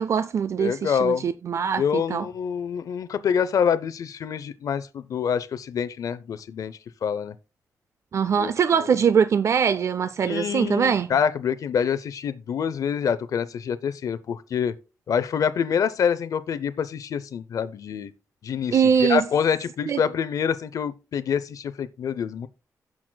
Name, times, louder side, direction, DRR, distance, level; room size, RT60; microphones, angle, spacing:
voice 1, 0.0-2.3 8.1-11.1 18.7-19.2 19.9-20.0, right 7 dB, 50° right, 0.4 m, -22 dB
voice 2, 0.6-1.3 1.8-7.3 8.4-8.5 10.2-14.7 15.1-18.1 18.4-22.5, left 7 dB, 65° left, 0.5 m, -26 dB
16.0 x 6.1 x 2.2 m
wide cardioid pair, 160°, 6 cm